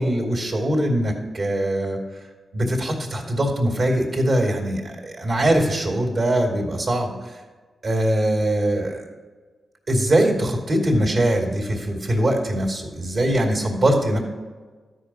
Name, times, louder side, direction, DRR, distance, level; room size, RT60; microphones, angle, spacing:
voice 1, 0.0-2.0 2.5-7.4 7.8-9.0 9.9-14.2, right 1 dB, 65° right, 1 dB, 2.6 m, -22 dB
12.5 x 5.1 x 5.8 m, 1.4 s
cardioid pair, 50°, 0 cm